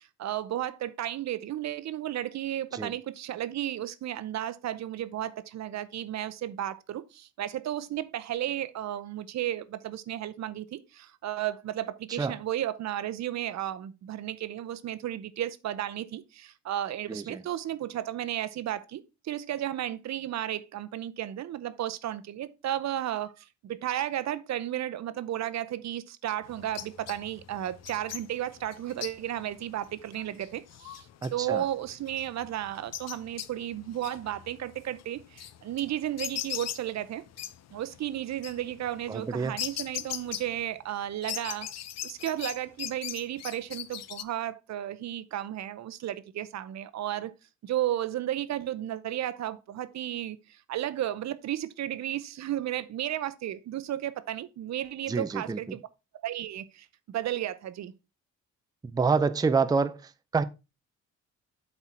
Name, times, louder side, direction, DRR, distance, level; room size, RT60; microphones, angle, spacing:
voice 1, 0.0-31.1 31.3-37.2 37.7-41.7 42.0-47.3 47.6-55.8 56.2-57.9, right 12 dB, 65° right, 0.7 m, -33 dB
voice 2, 17.1-17.4 31.2-31.6 39.1-39.5 55.1-55.8 58.9-60.4, right 4 dB, 15° right, 0.5 m, -27 dB
sound 1, 26.4-40.9 41.2-44.2, left 11 dB, 60° left, 0.6 m, -41 dB
8.0 x 4.4 x 4.3 m
cardioid pair, 90°, 30 cm